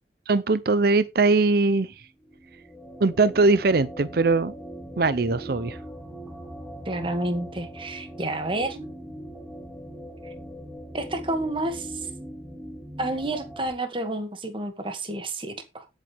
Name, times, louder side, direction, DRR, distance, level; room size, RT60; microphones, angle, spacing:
voice 1, 0.3-1.9 3.0-4.5 5.0-5.8, right 3 dB, 60° right, 0.6 m, -21 dB
sound 1, 2.1-13.7, right 1 dB, 5° right, 2.4 m, -41 dB
voice 2, 6.9-8.9 10.2-10.3 10.9-12.1 13.0-15.9, right 2 dB, 30° right, 2.1 m, -30 dB
17.5 x 8.2 x 3.5 m
head